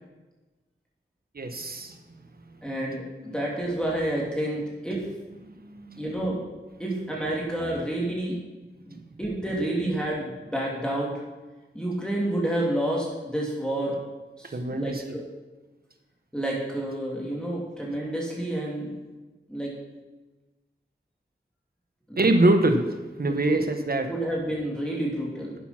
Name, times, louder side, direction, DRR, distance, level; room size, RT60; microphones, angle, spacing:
voice 1, 1.3-2.0 5.4-6.1 14.4-15.1 22.2-24.1, right 2 dB, 50° right, 6 dB, 1.3 m, -24 dB
voice 2, 2.6-5.0 6.0-6.4 6.8-8.4 8.8-11.2 11.7-14.0 14.4-14.9 16.3-18.9 19.5-19.7 22.1-22.2 23.4-23.6 24.1-25.6, right 1 dB, 5° left, -4 dB, 2.7 m, -29 dB
10.5 x 7.0 x 6.0 m, 1.2 s
wide cardioid pair, 60°, 19 cm